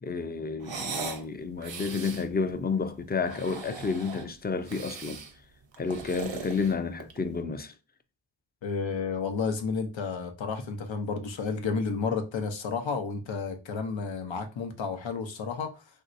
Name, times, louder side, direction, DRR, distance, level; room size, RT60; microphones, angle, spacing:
voice 1, 0.0-5.2 5.8-7.7, left 5 dB, 25° left, 0.4 m, -31 dB
sound 1, 0.6-1.2 1.6-2.3 3.1-4.3 4.7-5.3 5.7-7.3, right 5 dB, 80° right, 0.7 m, -39 dB
voice 2, 8.6-15.8, left 5 dB, 90° left, 0.7 m, -31 dB
3.1 x 2.7 x 2.5 m
wide cardioid pair, 50°, 44 cm